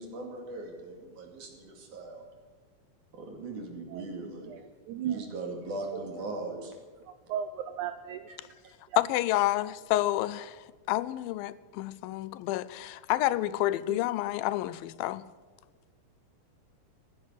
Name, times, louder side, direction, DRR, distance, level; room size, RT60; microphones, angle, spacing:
voice 1, 0.0-2.3 3.1-4.6 5.0-6.8 8.3-8.4, right 2 dB, 60° right, 3.8 m, -39 dB
voice 2, 4.9-5.2 5.9-6.0 7.3-8.2 8.6-8.7 13.9-14.0, right 9 dB, 75° right, 1.8 m, -35 dB
voice 3, 9.0-15.2, left 15 dB, 85° left, 2.3 m, -29 dB
14.5 x 11.0 x 8.3 m
omnidirectional pair, 4.2 m